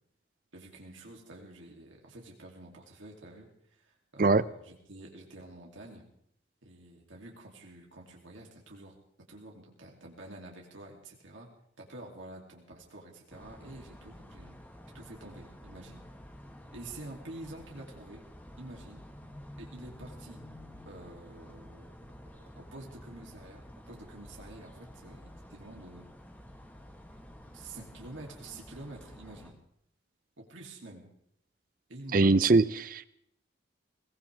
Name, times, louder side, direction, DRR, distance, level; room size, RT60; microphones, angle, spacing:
voice 1, 0.5-6.0 6.6-8.9 9.3-11.5 11.8-14.5 14.9-16.0 16.7-18.2 18.6-19.0 19.6-20.4 20.8-22.0 22.6-26.1 27.4-29.6 30.4-31.1 31.9-32.4, right 2 dB, 85° right, -1 dB, 2.7 m, -48 dB
sound 1, 13.3-29.5, equal, 10° left, 1.3 m, -50 dB
voice 2, 32.1-33.1, right 3 dB, 45° right, 17 dB, 0.5 m, -22 dB
21.0 x 18.5 x 3.4 m, 0.72 s
head